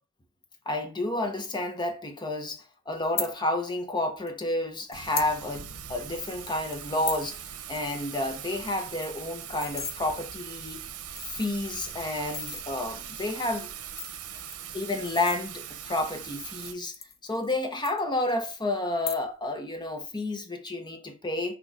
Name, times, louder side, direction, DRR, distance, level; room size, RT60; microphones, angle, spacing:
voice 1, 0.7-10.8 11.2-13.7 14.7-17.0 17.2-21.6, left 2 dB, 20° left, 0.9 m, -30 dB
sound 1, 3.0-3.3 4.3-4.4 4.9-5.3 5.7-5.8 6.0-6.3 6.7-7.3 7.6-7.8 8.1-8.2 8.5-8.6 8.8-10.0 10.6-10.7 11.1-11.7 12.2-12.6 13.6-15.8 16.5-17.6 17.8-18.5 18.9-19.5 19.8-20.2, left 6 dB, 45° left, 0.8 m, -37 dB
Thunder / Rain, 4.9-16.7, right 9 dB, 90° right, 0.9 m, -41 dB
6.2 x 3.1 x 5.2 m
head